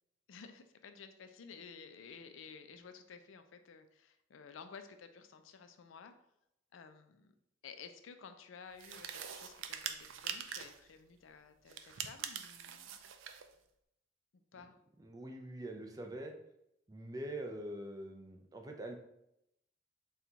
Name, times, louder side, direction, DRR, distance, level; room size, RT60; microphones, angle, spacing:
voice 1, 0.3-6.1 6.7-7.3 7.6-13.1 14.5-14.8, left 6 dB, 85° left, 8 dB, 0.4 m, -53 dB
sound 1, 8.8-10.8 11.7-13.5, right 8 dB, 80° right, 0.4 m, -44 dB
voice 2, 15.0-16.3 16.9-19.0, right 1 dB, 20° right, 3 dB, 0.4 m, -44 dB
4.3 x 2.3 x 3.8 m, 0.82 s
head